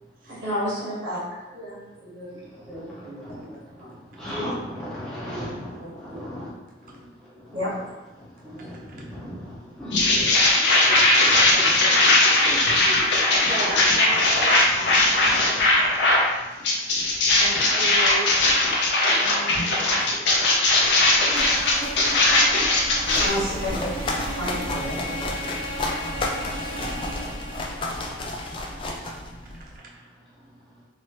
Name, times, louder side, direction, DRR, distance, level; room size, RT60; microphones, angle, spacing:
voice 1, 0.3-1.2 1.5-3.9 5.3-5.5 5.8-5.9 7.5-7.7 8.4-8.6 23.2-23.9 24.3-25.0 28.7-29.0, equal, 90° right, -7 dB, 1.5 m, -32 dB
voice 2, 4.2-6.5 7.6-7.8 8.5-10.2 10.9-13.0, equal, 5° left, -10 dB, 1.0 m, -36 dB
sound 1, 9.9-16.3 16.6-23.3, left 2 dB, 75° left, 0.6 m, -19 dB
voice 3, 13.4-14.6 17.3-18.3 19.1-21.2, right 2 dB, 50° right, -2 dB, 0.6 m, -35 dB
sound 2, 21.2-29.2, equal, 65° right, 1.1 m, -34 dB
sound 3, 22.8-29.7, left 2 dB, 30° left, 0.3 m, -32 dB
3.1 x 2.8 x 2.9 m, 1.1 s
head